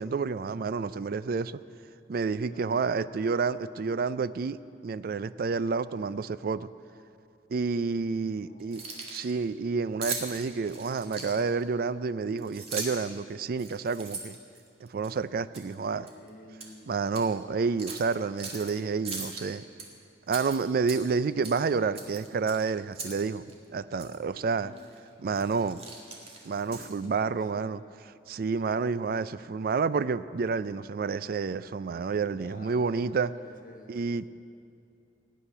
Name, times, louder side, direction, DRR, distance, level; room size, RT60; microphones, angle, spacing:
voice 1, 0.0-1.6 2.1-6.7 7.5-14.4 14.8-16.1 16.9-19.6 20.3-24.7 25.2-25.8 26.4-33.3 33.9-34.3, right 5 dB, 55° right, 16 dB, 0.4 m, -29 dB
voice 2, 2.5-3.1 8.3-9.1 15.8-17.1 24.5-24.9 26.7-27.9 29.4-29.9 32.4-34.1, left 1 dB, 50° left, 2 dB, 1.5 m, -51 dB
Keys jangling, 8.6-9.3 10.0-11.6 12.4-13.1 13.5-15.1 15.5-15.7 16.1-16.7 17.1-17.2 17.8-18.7 19.0-19.9 20.3-21.2 21.4-21.6 21.9-23.2 23.5-23.6 24.0-24.2 24.8-25.0 25.3-27.1, right 4 dB, 35° right, 2.0 m, -39 dB
17.0 x 6.4 x 10.0 m, 2.6 s
head